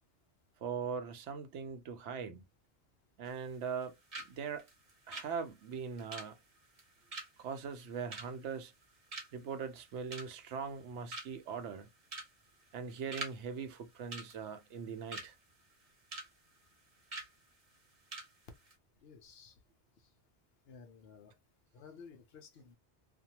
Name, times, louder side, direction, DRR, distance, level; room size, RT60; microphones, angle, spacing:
voice 1, 0.6-2.5 3.2-4.7 5.1-6.4 7.4-8.7 9.3-11.9 12.7-15.3, right 6 dB, 90° right, 0.9 m, -41 dB
sound 1, 3.2-3.8 4.1-4.3 4.6-8.8 9.1-9.5 9.9-10.5 10.8-10.9 11.1-11.5 12.0-12.3 12.6-13.4 13.6-13.8 14.1-15.3 15.7-16.3 16.6-16.7 17.1-17.3 17.7-17.8 18.1-18.3 18.6-18.7, right 2 dB, 35° right, 0.9 m, -45 dB
voice 2, 19.0-19.5 20.7-21.3 21.7-22.8, left 5 dB, 65° left, 0.8 m, -54 dB
2.5 x 2.2 x 2.8 m
omnidirectional pair, 1.1 m